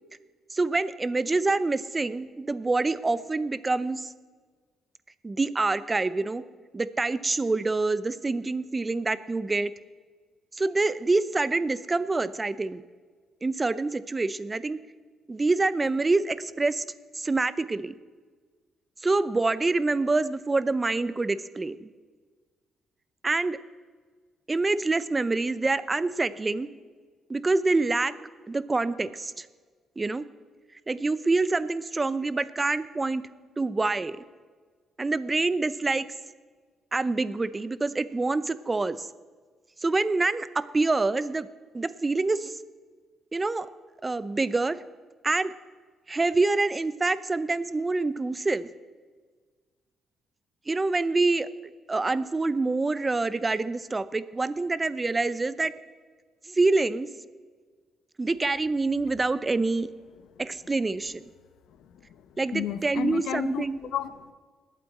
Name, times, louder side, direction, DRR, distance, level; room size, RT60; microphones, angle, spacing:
voice 1, 0.5-4.1 5.2-6.4 6.7-9.7 10.5-12.8 13.4-14.8 15.3-16.8 17.2-18.0 19.0-21.9 23.2-23.6 24.5-26.7 27.3-28.1 28.5-29.5 30.0-30.3 30.9-33.2 33.6-34.2 35.0-36.1 36.9-39.1 39.8-41.5 41.7-42.6 43.3-43.7 44.0-44.8 45.2-45.5 46.1-48.7 50.7-51.5 51.9-55.7 56.4-57.1 58.2-59.9 60.4-61.3 62.4-63.8, right 3 dB, 25° right, 15 dB, 0.6 m, -26 dB
voice 2, 61.8-64.3, left 9 dB, 80° left, 12 dB, 0.7 m, -33 dB
20.0 x 8.5 x 4.2 m, 1.5 s
cardioid pair, 90°, 0 cm